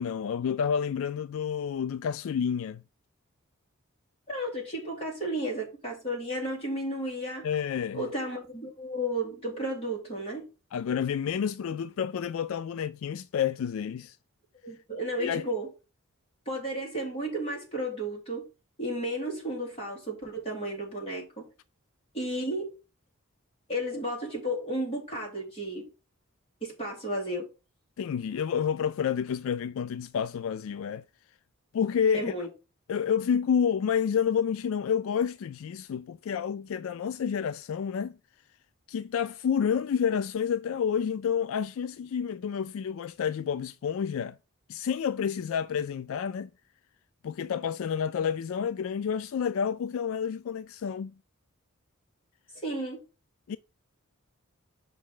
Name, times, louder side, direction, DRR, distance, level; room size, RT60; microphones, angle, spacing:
voice 1, 0.0-2.8 7.4-8.0 10.7-14.2 15.2-15.4 28.0-31.0 31.7-32.3 32.9-38.2 38.9-44.4 44.7-46.5 47.2-51.1 53.5-53.6, left 7 dB, 70° left, 0.3 m, -29 dB
voice 2, 4.3-7.5 7.9-10.5 14.6-15.7 16.4-18.4 18.8-21.5 22.1-22.7 23.7-25.9 26.6-27.4 32.1-32.5 52.6-53.0, right 1 dB, 25° left, 3.3 m, -33 dB
7.4 x 5.3 x 3.8 m
head